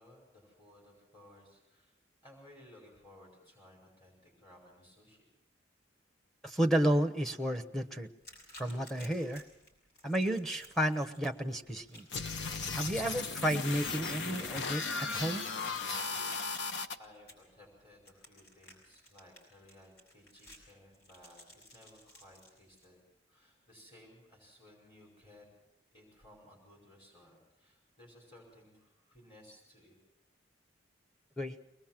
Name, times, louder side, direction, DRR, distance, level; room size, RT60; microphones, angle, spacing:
voice 1, 0.0-1.9 2.2-5.3 17.0-23.0 23.3-25.5 25.9-30.0, left 1 dB, 30° left, -1 dB, 5.4 m, -59 dB
voice 2, 6.4-8.1 8.6-9.4 10.0-12.1 12.7-15.5 31.4-31.6, right 1 dB, ahead, 7 dB, 1.0 m, -32 dB
Crashing eggs, 8.2-22.9, left 1 dB, 55° left, 6.1 m, -59 dB
sound 1, 12.1-17.0, left 4 dB, 70° left, 1.0 m, -36 dB
23.5 x 19.5 x 7.5 m, 0.85 s
head